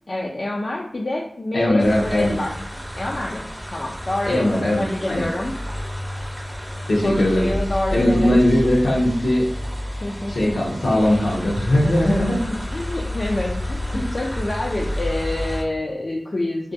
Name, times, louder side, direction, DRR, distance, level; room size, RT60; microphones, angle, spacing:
voice 1, 0.1-2.5 3.0-3.5 3.7-5.5 6.2-6.3 7.0-8.6 10.0-10.5 11.8-16.7, left 1 dB, 60° left, -3 dB, 0.3 m, -27 dB
voice 2, 1.5-2.3 4.2-5.3 6.9-7.5 7.9-9.5 10.3-12.5 13.9-14.1, left 1 dB, 85° left, -3 dB, 0.7 m, -19 dB
sound 1, 1.8-15.6, left 1 dB, 5° right, 0.6 m, -30 dB
2.3 x 2.2 x 2.5 m, 0.72 s
wide cardioid pair, 45°, 0 cm